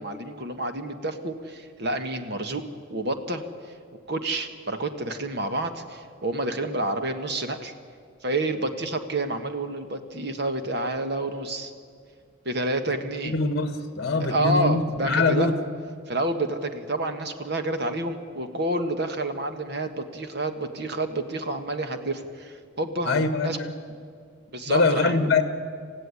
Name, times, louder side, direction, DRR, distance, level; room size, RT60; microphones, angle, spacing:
voice 1, 0.0-2.6 2.9-3.4 4.1-7.7 8.2-11.7 12.4-13.3 14.2-15.5 16.1-23.6 24.5-25.1, right 2 dB, 50° right, 7 dB, 1.6 m, -29 dB
voice 2, 13.2-15.5 23.0-23.7 24.7-25.4, left 3 dB, 50° left, 8 dB, 1.6 m, -23 dB
27.5 x 15.0 x 9.8 m, 2.2 s
head